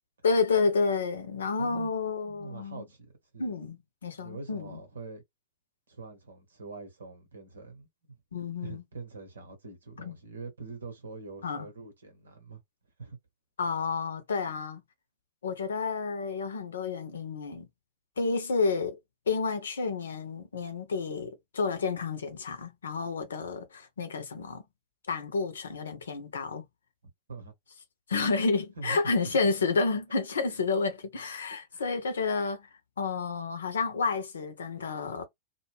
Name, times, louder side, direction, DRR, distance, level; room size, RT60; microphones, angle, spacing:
voice 1, 0.2-2.8 3.4-4.8 8.3-8.8 10.0-10.1 11.4-11.7 13.6-14.8 15.4-17.7 18.2-19.0 19.3-24.6 25.1-26.6 28.1-32.7 33.0-35.2, left 4 dB, 70° left, 0.7 m, -30 dB
voice 2, 1.6-1.9 2.3-3.5 4.2-5.2 5.9-8.2 8.6-12.6 13.0-13.2 27.3-27.5 28.3-28.4 28.8-29.1 31.7-31.9, right 3 dB, 70° right, 0.9 m, -44 dB
2.3 x 2.1 x 3.2 m
figure-of-eight pair, 90°, 0 cm